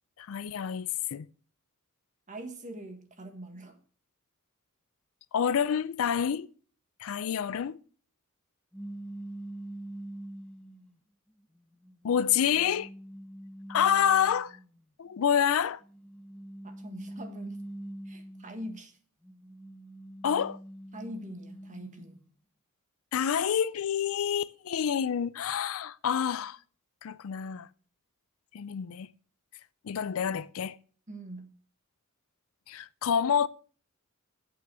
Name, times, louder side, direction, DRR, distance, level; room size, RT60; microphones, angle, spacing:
voice 1, 0.2-1.3 5.3-6.5 7.0-7.8 12.0-12.9 13.7-14.6 15.0-15.8 20.2-20.6 23.1-26.6 27.0-27.7 28.5-29.1 29.8-30.8 32.7-33.5, left 8 dB, 65° left, 0.4 m, -28 dB
voice 2, 2.3-3.8 16.6-17.6 18.0-19.0 20.9-22.2 31.1-31.5, right 1 dB, 35° right, 1.6 m, -43 dB
sound 1, 8.7-10.9 11.6-14.7 15.8-18.8 19.2-22.2, right 1 dB, 5° left, 0.6 m, -44 dB
8.4 x 7.0 x 6.1 m
head